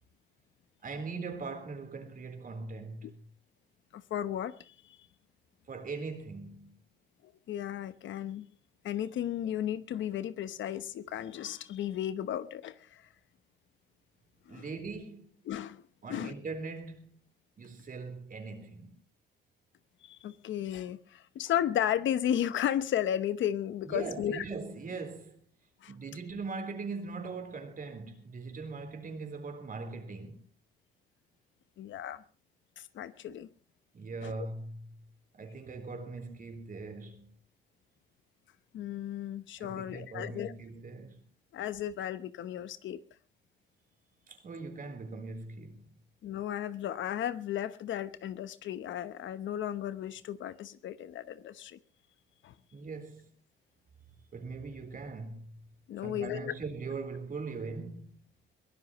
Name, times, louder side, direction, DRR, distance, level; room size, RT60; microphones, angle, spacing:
voice 1, 0.8-3.3 5.7-6.8 14.5-15.3 16.0-17.2 17.6-19.0 23.8-25.4 25.9-30.4 33.3-33.4 33.9-35.0 35.3-37.3 39.6-41.2 44.3-46.0 52.7-53.3 54.3-55.6 56.0-58.2, right 4 dB, 45° right, 3.9 m, -41 dB
voice 2, 3.9-4.7 7.5-8.5 8.8-13.0 14.5-14.6 15.5-15.8 16.1-16.3 20.0-24.4 25.8-25.9 31.8-32.2 32.8-33.5 34.2-34.4 38.7-40.5 41.5-43.0 46.2-51.8 52.4-52.5 55.9-56.5, left 10 dB, 75° left, 1.0 m, -34 dB
22.5 x 16.5 x 3.1 m
cardioid pair, 90°, 20 cm